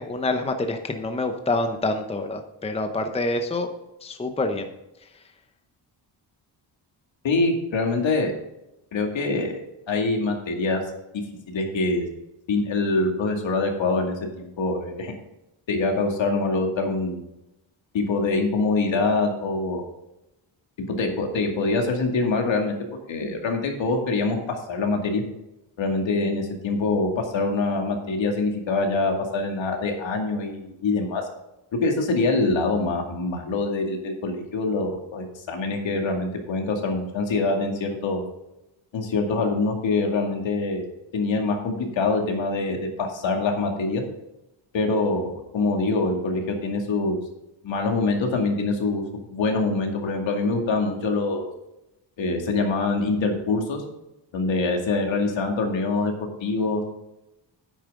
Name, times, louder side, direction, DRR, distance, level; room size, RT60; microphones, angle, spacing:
voice 1, 0.0-3.7 4.0-4.7, left 2 dB, 15° left, 7 dB, 0.8 m, -26 dB
voice 2, 7.2-8.3 8.9-9.6 9.9-10.8 11.5-12.0 12.5-15.1 15.7-17.3 17.9-19.9 20.8-22.8 23.1-25.2 25.8-31.3 31.7-38.2 38.9-40.8 41.1-44.0 44.7-47.2 47.6-49.0 49.3-51.5 52.2-53.8 54.3-56.8, left 3 dB, 70° left, 2 dB, 2.3 m, -24 dB
10.0 x 8.7 x 3.7 m, 0.91 s
cardioid pair, 110°, 47 cm